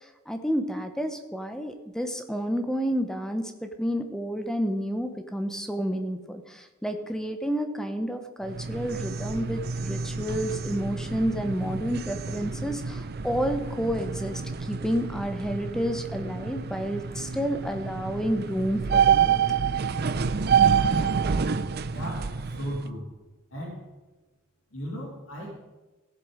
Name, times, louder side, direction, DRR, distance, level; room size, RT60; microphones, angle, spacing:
voice 1, 0.3-19.4, equal, 5° left, 6 dB, 0.8 m, -30 dB
sound 1, 8.4-22.9, right 6 dB, 50° right, 0.5 m, -28 dB
voice 2, 21.9-23.1 23.5-23.8 24.7-25.6, equal, 75° left, -2 dB, 2.9 m, -36 dB
16.0 x 7.4 x 5.0 m, 1.2 s
head